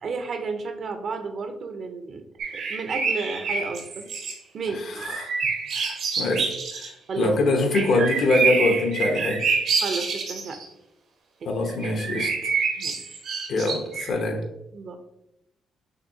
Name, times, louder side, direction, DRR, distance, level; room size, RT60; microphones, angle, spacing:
voice 1, 0.0-4.1 4.5-5.1 7.1-7.4 9.8-10.6 11.4-11.5 12.8-13.2 14.7-15.0, right 4 dB, 55° right, 7 dB, 0.6 m, -32 dB
sound 1, 2.4-4.3 5.0-6.9 7.7-10.6 11.7-14.1, right 5 dB, 75° right, 0.9 m, -27 dB
voice 2, 5.0-5.3 5.7-6.5 6.8-6.9 7.2-9.4 11.5-12.3 13.5-14.4, left 2 dB, 70° left, 3 dB, 0.9 m, -24 dB
6.4 x 2.7 x 2.7 m, 0.87 s
cardioid pair, 90°, 0 cm